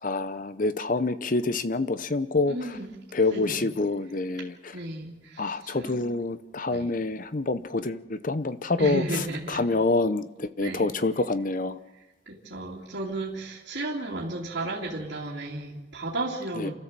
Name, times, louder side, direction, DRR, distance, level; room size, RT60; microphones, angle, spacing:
voice 1, 0.0-2.6 3.1-4.5 5.4-9.0 9.5-11.8 16.6-16.7, left 3 dB, 40° left, 13 dB, 0.7 m, -27 dB
voice 2, 2.4-2.9 3.3-3.6 4.7-6.1 6.7-6.9 8.8-9.7 10.6-10.9 11.9-16.7, right 2 dB, 55° right, -6 dB, 2.8 m, -34 dB
28.5 x 13.5 x 7.5 m, 1.1 s
head